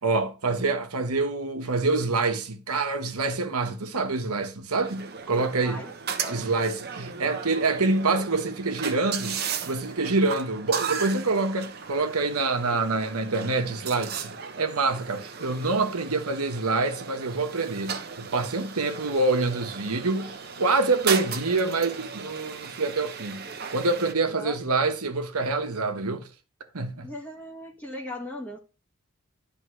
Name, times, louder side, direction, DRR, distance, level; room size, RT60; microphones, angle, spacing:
voice 1, 0.0-5.8 6.3-23.5 23.7-26.3 26.7-27.1, right 3 dB, 85° right, 1.3 m, -26 dB
sound 1, 4.8-24.1, right 6 dB, 45° right, 1.0 m, -36 dB
voice 2, 5.3-6.5 7.1-7.2 12.3-12.9 24.3-24.8 27.0-28.6, left 1 dB, 10° left, 1.2 m, -40 dB
11.0 x 3.9 x 6.3 m
head